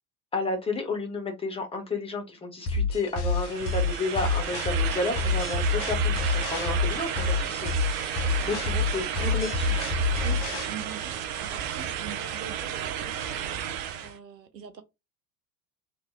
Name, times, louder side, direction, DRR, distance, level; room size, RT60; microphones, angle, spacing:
voice 1, 0.3-9.9, left 3 dB, 10° left, 0.7 m, -32 dB
sound 1, 2.7-10.7, left 3 dB, 45° left, 1.0 m, -28 dB
sound 2, 3.3-14.2, right 9 dB, 40° right, 0.5 m, -33 dB
voice 2, 10.7-13.5 14.0-14.8, right 7 dB, 80° right, 0.7 m, -43 dB
2.9 x 2.4 x 3.2 m
figure-of-eight pair, 75°, 50 cm